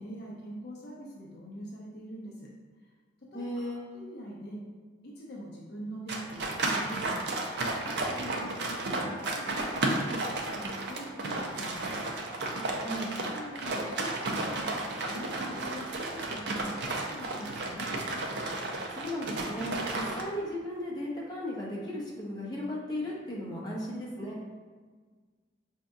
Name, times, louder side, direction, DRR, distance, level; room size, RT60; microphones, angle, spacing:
voice 1, 0.0-2.5 2.8-2.9 3.3-4.6 5.0-7.3 7.8-12.1 13.2-14.7 15.0-18.0, equal, 55° left, -4 dB, 0.5 m, -44 dB
voice 2, 3.3-3.8 12.8-13.1 18.9-24.4, left 1 dB, 20° left, -5 dB, 0.7 m, -36 dB
sound 1, 6.1-20.2, right 2 dB, 60° right, 0.4 m, -33 dB
5.0 x 2.7 x 2.3 m, 1.5 s
head